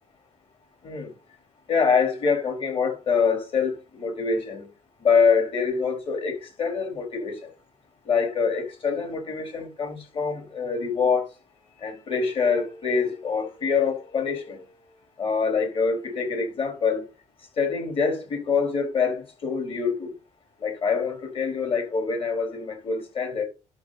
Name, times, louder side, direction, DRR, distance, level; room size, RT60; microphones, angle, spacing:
voice 1, 1.7-4.7 5.0-7.5 8.1-11.3 11.8-14.7 15.2-17.0 17.6-20.1 20.6-23.4, left 5 dB, 45° left, 4.1 m, -25 dB
11.5 x 6.6 x 4.1 m
cardioid pair, 135°, 13 cm